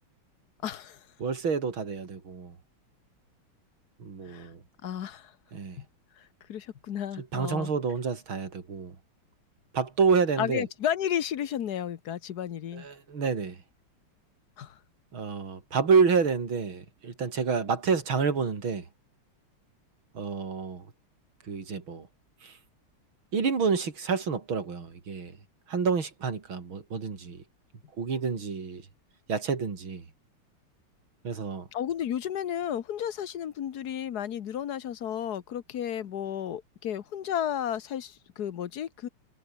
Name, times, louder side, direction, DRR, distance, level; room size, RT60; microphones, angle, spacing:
voice 1, 0.6-1.1 4.2-4.5 4.8-5.3 5.8-5.9 6.2-7.7 10.4-12.9 14.6-14.8 31.7-39.1, left 10 dB, 55° left, 1.4 m, -33 dB
voice 2, 1.2-2.5 4.0-4.6 5.5-5.8 7.2-9.0 9.7-10.7 12.7-13.6 15.1-18.9 20.1-20.9 21.5-22.1 22.4-22.6 23.3-25.3 25.7-27.4 28.0-28.9 29.3-30.0 31.2-31.7, right 5 dB, 65° right, 4.1 m, -28 dB
omnidirectional pair, 2.4 m